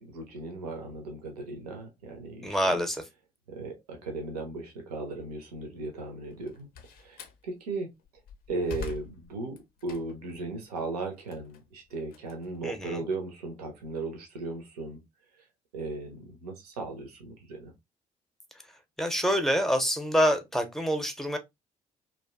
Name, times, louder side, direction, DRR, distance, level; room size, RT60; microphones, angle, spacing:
voice 1, 0.0-2.8 3.5-6.7 7.0-7.9 8.5-9.6 9.8-15.0 15.7-17.7, right 3 dB, 80° right, 0.5 m, -37 dB
voice 2, 2.4-3.0 12.6-13.0 19.0-21.4, equal, ahead, 0.6 m, -26 dB
Slam, 6.3-7.4 8.0-10.3 10.8-13.1, left 6 dB, 50° left, 0.4 m, -44 dB
2.5 x 2.2 x 2.3 m
figure-of-eight pair, 50°, 19 cm